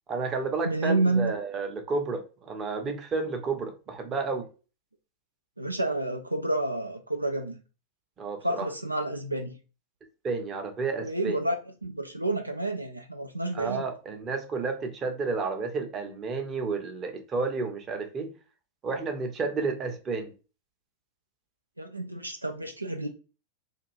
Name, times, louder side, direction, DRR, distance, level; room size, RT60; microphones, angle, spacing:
voice 1, 0.1-4.5 8.2-8.7 10.2-11.4 13.5-18.3 18.8-20.3, right 4 dB, 25° right, 0.6 m, -31 dB
voice 2, 0.6-1.3 5.6-7.6 8.4-9.6 11.0-11.5 11.8-13.8 21.8-23.1, right 2 dB, 85° right, 0.3 m, -29 dB
2.5 x 2.3 x 3.1 m
figure-of-eight pair, 90°, 0 cm